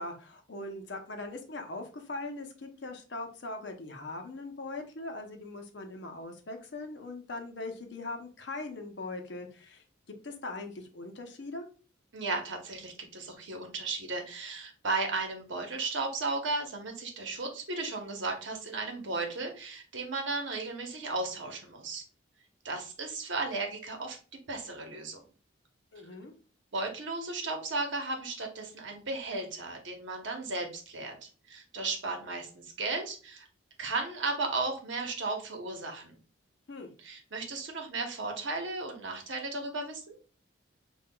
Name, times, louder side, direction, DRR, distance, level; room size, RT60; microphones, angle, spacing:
voice 1, 0.0-11.7 25.9-26.3 36.7-36.9, left 2 dB, 60° left, 4 dB, 0.6 m, -41 dB
voice 2, 12.1-22.0 22.6-24.2 24.5-25.2 26.7-33.5 33.8-36.2 37.0-40.2, right 3 dB, 70° right, 3 dB, 0.9 m, -35 dB
5.5 x 2.3 x 2.2 m, 0.37 s
head